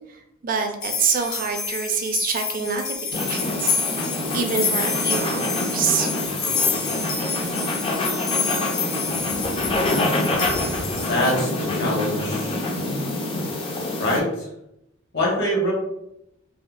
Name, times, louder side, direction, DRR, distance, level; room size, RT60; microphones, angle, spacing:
voice 1, 0.1-3.8 4.3-6.4, right 6 dB, 40° right, 5 dB, 0.4 m, -26 dB
sound 1, 0.8-11.3, left 5 dB, 85° left, 0.7 m, -28 dB
sound 2, 3.1-14.2, left 2 dB, 25° left, 0.4 m, -26 dB
voice 2, 11.1-12.6 14.0-14.3 15.1-15.7, left 1 dB, 55° left, -4 dB, 1.2 m, -24 dB
3.5 x 2.0 x 2.5 m, 0.81 s
head